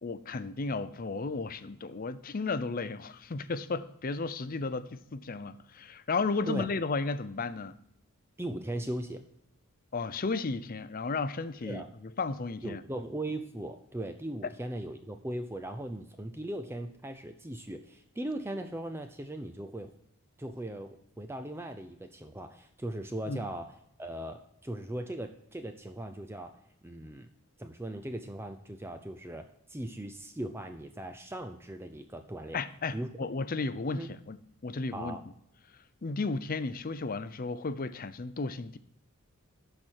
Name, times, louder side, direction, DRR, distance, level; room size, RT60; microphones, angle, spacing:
voice 1, 0.0-7.8 9.9-11.8 12.2-12.8 23.3-23.5 32.5-35.2 36.0-38.8, left 3 dB, 40° left, 0.5 m, -34 dB
voice 2, 8.4-9.2 11.6-11.9 12.6-19.9 20.4-26.5 26.8-27.3 27.6-32.6 32.9-33.3 33.9-34.1 34.9-35.2, right 1 dB, 10° right, 0.5 m, -39 dB
12.0 x 4.5 x 6.3 m
head